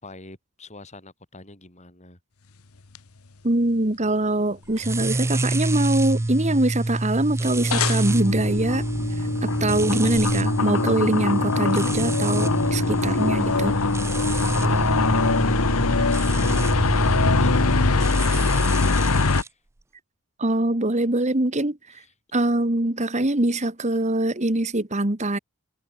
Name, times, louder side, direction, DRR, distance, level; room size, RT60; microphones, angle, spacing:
voice 1, 0.0-2.2 14.6-19.0 19.3-19.6 21.9-22.1, left 2 dB, 30° left, 6.1 m, -45 dB
sound 1, 2.9-3.0 7.7-19.4, left 3 dB, 75° left, 1.2 m, -23 dB
voice 2, 3.4-8.8 9.4-13.8 20.4-21.8 22.3-25.4, right 1 dB, 30° right, 1.7 m, -23 dB
sound 2, 4.8-19.5, right 2 dB, 10° right, 0.3 m, -27 dB
head